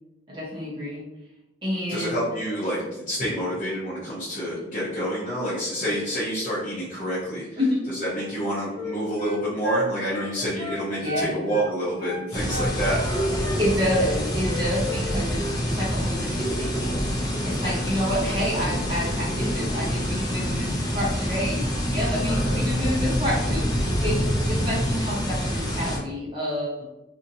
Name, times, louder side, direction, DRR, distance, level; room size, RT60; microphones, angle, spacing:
voice 1, 0.3-1.0 1.6-2.2 7.6-7.8 11.0-11.4 13.4-24.2 24.5-26.9, left 1 dB, 25° right, -6 dB, 0.8 m, -29 dB
voice 2, 1.9-7.6 7.9-13.0, equal, 40° left, -9 dB, 0.8 m, -28 dB
Wind instrument woodwind instrument, 8.2-11.7 12.0-13.6 13.9-14.1 14.4-15.1 15.3-15.6, right 1 dB, 70° right, 1.3 m, -32 dB
sound 1, 12.3-26.0, equal, 20° left, 0.4 m, -26 dB
2.7 x 2.6 x 2.6 m, 0.95 s
head